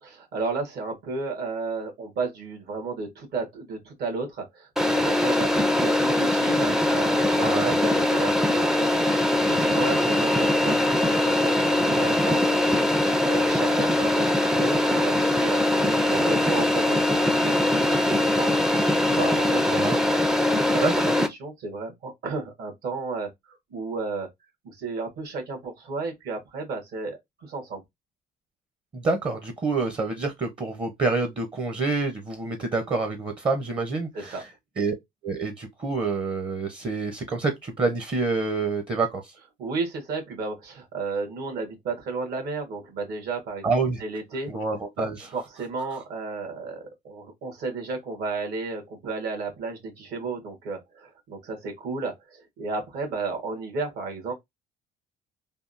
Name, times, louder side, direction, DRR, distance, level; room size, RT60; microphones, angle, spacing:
voice 1, 0.0-17.7 18.0-20.1 20.3-20.8 21.1-24.3 24.6-27.8 34.1-34.4 39.6-43.7 44.0-44.5 45.0-54.3, right 3 dB, 70° right, 1.5 m, -33 dB
sound 1, 4.8-21.3, left 1 dB, 5° right, 0.4 m, -22 dB
voice 2, 7.4-7.7 19.7-20.0 20.8-21.1 28.9-34.4 34.8-34.9 35.2-39.2 43.6-44.0 44.5-45.2, right 3 dB, 30° right, 0.7 m, -27 dB
3.5 x 2.3 x 2.5 m
cardioid pair, 110°, 17 cm